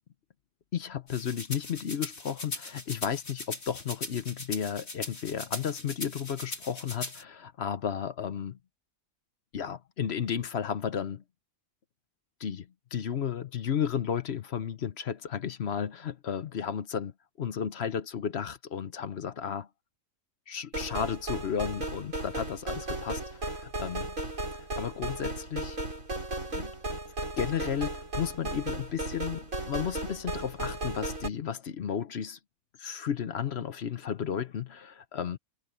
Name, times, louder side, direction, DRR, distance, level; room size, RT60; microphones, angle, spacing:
voice 1, 0.7-8.6 9.5-11.2 12.4-17.1 17.4-19.7 20.5-24.1 24.5-25.8 26.5-26.7 27.4-32.4 32.8-35.4, left 8 dB, 55° left, 1.0 m, -33 dB
sound 1, 1.1-7.2, left 2 dB, 80° left, 5.2 m, -40 dB
sound 2, 20.7-31.3, right 2 dB, 75° right, 6.4 m, -35 dB
omnidirectional pair, 1.4 m